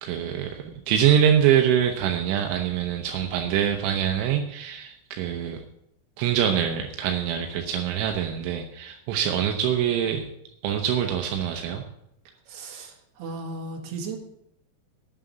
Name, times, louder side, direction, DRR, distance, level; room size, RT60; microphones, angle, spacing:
voice 1, 0.0-5.6 6.2-10.3 10.6-11.8, right 9 dB, 85° right, 4 dB, 3.3 m, -24 dB
voice 2, 12.5-14.2, right 3 dB, 65° right, 1 dB, 3.9 m, -36 dB
9.5 x 7.6 x 9.0 m, 0.79 s
omnidirectional pair, 5.3 m